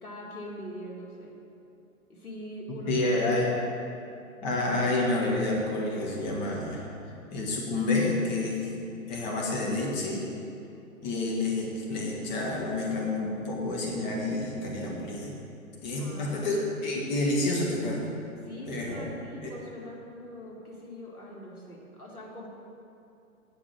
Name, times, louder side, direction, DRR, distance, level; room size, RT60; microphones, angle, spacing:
voice 1, 0.0-1.3 2.1-3.3 16.0-16.5 18.4-22.5, equal, 85° left, -3 dB, 2.1 m, -42 dB
voice 2, 2.9-3.5 4.4-6.9 7.3-8.7 9.1-10.3 11.0-15.3 15.8-18.1 18.7-19.1 19.4-19.5, left 2 dB, 30° left, -2 dB, 1.5 m, -29 dB
9.0 x 5.0 x 7.1 m, 2.8 s
figure-of-eight pair, 125°, 43 cm